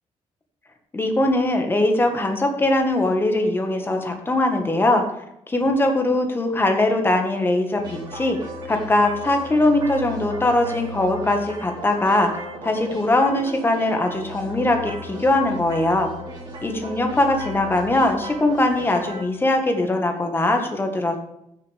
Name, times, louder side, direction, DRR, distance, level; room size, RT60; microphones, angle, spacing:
voice 1, 0.9-5.0 5.5-8.4 8.7-12.3 12.6-16.1 16.6-21.2, left 2 dB, 20° left, 4 dB, 1.5 m, -21 dB
sound 1, 7.8-19.2, equal, 40° right, 3.1 m, -36 dB
15.5 x 6.8 x 3.4 m, 0.81 s
cardioid pair, 140°, 12 cm